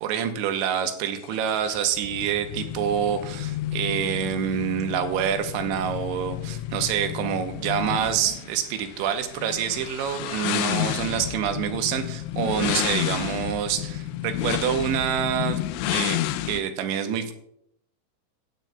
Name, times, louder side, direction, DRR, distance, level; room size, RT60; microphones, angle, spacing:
voice 1, 0.0-16.2 16.5-17.3, right 9 dB, 85° right, 7 dB, 3.1 m, -27 dB
sound 1, 1.3-16.6, left 13 dB, 85° left, 2.9 m, -31 dB
18.5 x 8.9 x 2.3 m, 0.71 s
omnidirectional pair, 5.3 m